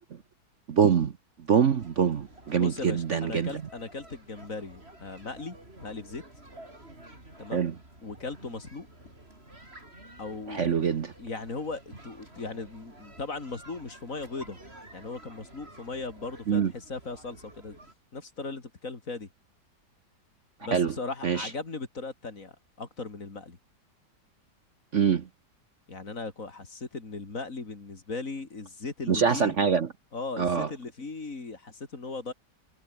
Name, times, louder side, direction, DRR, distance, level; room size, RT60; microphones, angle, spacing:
voice 1, 0.7-1.1 1.5-3.5 7.5-7.7 10.5-11.1 16.5-16.7 20.7-20.9 21.2-21.5 24.9-25.3 29.1-29.9 30.4-30.7, right 7 dB, 50° right, 1.2 m, -24 dB
sound 1, 1.8-17.9, right 1 dB, 35° right, 6.8 m, -51 dB
voice 2, 2.5-5.6 5.8-6.2 7.4-7.6 8.0-8.9 10.2-10.7 11.2-14.6 14.9-17.8 18.1-19.3 20.6-23.6 25.9-29.5 30.1-32.3, left 3 dB, 50° left, 3.3 m, -38 dB
omnidirectional pair, 1.9 m